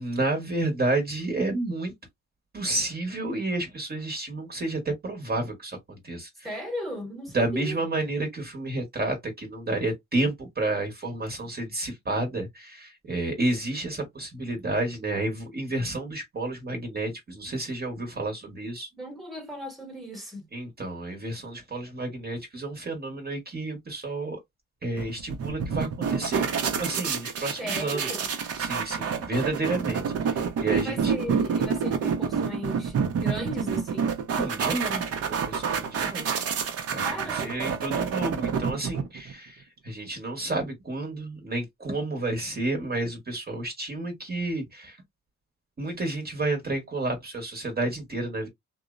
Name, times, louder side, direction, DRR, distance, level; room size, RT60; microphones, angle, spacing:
voice 1, 0.0-1.9 2.5-6.3 7.3-18.9 20.5-24.4 24.8-28.1 28.6-31.1 34.4-36.3 36.9-45.0 45.8-48.5, right 2 dB, 30° right, 1.0 m, -31 dB
voice 2, 6.4-7.8 19.0-20.5 27.6-28.3 30.7-34.1 37.0-37.7, equal, ahead, 1.1 m, -37 dB
sound 1, 25.0-39.3, right 6 dB, 55° right, 0.7 m, -28 dB
2.8 x 2.0 x 2.4 m
cardioid pair, 90°, 30 cm